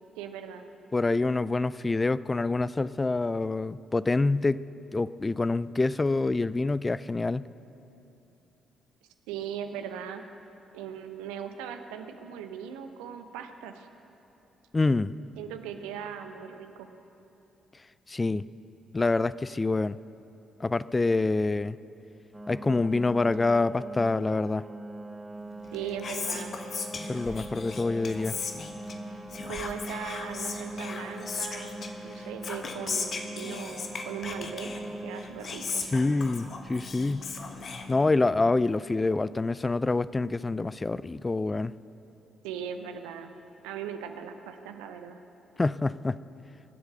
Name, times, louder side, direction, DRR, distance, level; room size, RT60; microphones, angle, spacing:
voice 1, 0.2-0.6 9.3-10.2 10.7-13.9 15.4-16.9 25.7-26.5 29.5-34.7 35.0-35.8 42.4-43.3 43.6-45.2, right 8 dB, 70° right, 7 dB, 0.8 m, -39 dB
voice 2, 0.9-4.6 4.9-7.5 14.7-15.1 18.1-18.4 18.9-20.0 20.6-21.8 22.5-24.6 27.0-28.4 35.9-37.3 37.9-41.7 45.6-46.2, left 3 dB, 25° left, 18 dB, 0.3 m, -26 dB
sound 1, 22.3-35.2, right 2 dB, 15° right, 1.0 m, -42 dB
Whispering, 25.6-38.4, left 4 dB, 45° left, 1.2 m, -37 dB
22.0 x 8.0 x 6.5 m, 2.9 s
figure-of-eight pair, 40°, 0 cm